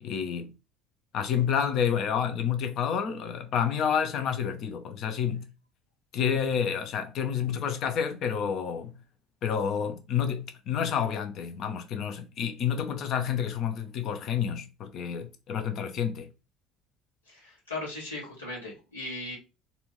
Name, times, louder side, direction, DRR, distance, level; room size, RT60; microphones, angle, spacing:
voice 1, 0.0-0.5 1.1-5.5 6.1-9.0 9.4-16.3, left 8 dB, 50° left, 0.7 m, -29 dB
voice 2, 17.3-19.4, left 2 dB, 80° left, 1.4 m, -38 dB
4.2 x 2.6 x 3.1 m
figure-of-eight pair, 60°, 0 cm